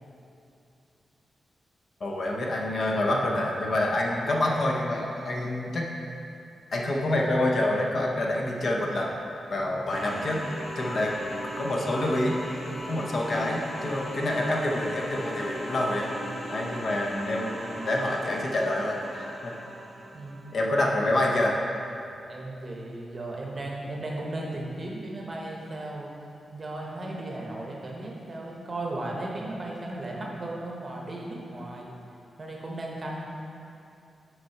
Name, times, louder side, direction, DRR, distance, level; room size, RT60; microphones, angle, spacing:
voice 1, 2.0-5.9 6.7-9.1 9.5-10.4 10.7-11.1 11.4-12.4 12.8-16.1 16.5-19.5 20.5-21.6, left 1 dB, 45° left, -1 dB, 0.7 m, -27 dB
sound 1, 9.9-20.7, equal, 30° left, 1.3 m, -38 dB
voice 2, 16.6-17.0 20.1-20.7 22.3-26.1 26.5-31.9 32.4-33.2, right 2 dB, 30° right, -2 dB, 0.8 m, -36 dB
6.7 x 4.4 x 4.4 m, 2.7 s
wide cardioid pair, 175°, 0 cm